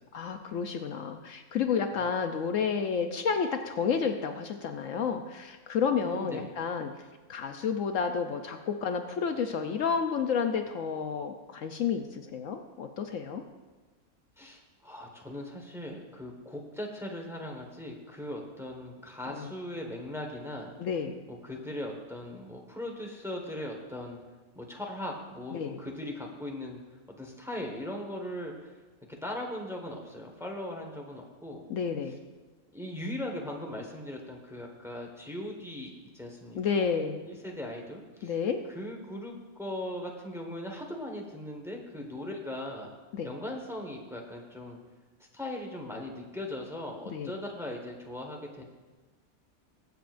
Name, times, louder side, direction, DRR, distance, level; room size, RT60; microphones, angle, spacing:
voice 1, 0.1-6.9 7.3-13.4 19.3-19.5 20.8-21.2 25.5-25.8 31.7-32.2 36.6-37.3 38.2-38.6 43.1-43.3 47.1-47.3, left 6 dB, 70° left, 5 dB, 1.0 m, -30 dB
voice 2, 6.1-6.5 14.4-20.7 21.3-24.2 24.5-26.8 27.2-28.7 29.1-31.6 32.7-36.8 37.2-38.4 38.7-42.9 43.2-44.8 45.3-48.6, left 1 dB, ahead, 0 dB, 1.3 m, -39 dB
22.0 x 7.8 x 2.5 m, 1.3 s
omnidirectional pair, 1.5 m